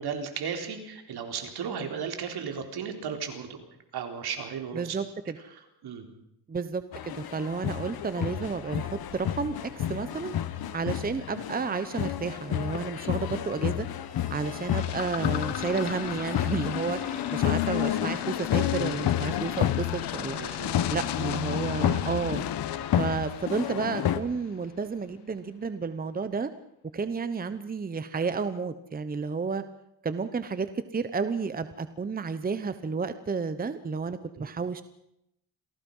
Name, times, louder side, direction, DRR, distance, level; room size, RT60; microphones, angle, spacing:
voice 1, 0.0-3.6 3.9-5.0 5.8-6.1 18.5-18.7 20.4-20.8 34.4-34.5, right 7 dB, 70° right, 5 dB, 4.1 m, -35 dB
voice 2, 4.7-5.4 6.5-10.3 10.7-13.9 14.3-20.4 20.9-22.5 23.0-26.5 26.9-29.6 30.0-34.8, right 5 dB, 20° right, 12 dB, 1.0 m, -31 dB
sound 1, 6.9-24.2, left 11 dB, 65° left, 1.4 m, -31 dB
sound 2, 14.0-18.6, left 4 dB, 20° left, 2.2 m, -47 dB
sound 3, 14.8-24.3, left 13 dB, 90° left, 1.3 m, -34 dB
27.5 x 18.5 x 5.6 m, 0.78 s
cardioid pair, 135°, 40 cm